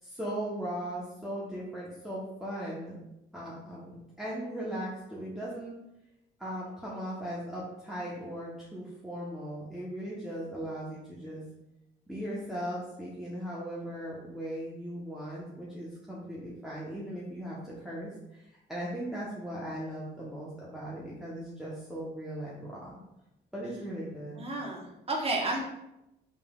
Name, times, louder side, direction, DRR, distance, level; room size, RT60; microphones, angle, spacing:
voice 1, 0.0-3.0 3.3-5.7 6.4-11.4 12.1-23.0 23.5-24.5, right 1 dB, ahead, -7 dB, 1.0 m, -38 dB
voice 2, 24.4-25.6, right 2 dB, 30° right, -2 dB, 1.2 m, -31 dB
5.4 x 3.3 x 2.4 m, 0.89 s
cardioid pair, 90°, 20 cm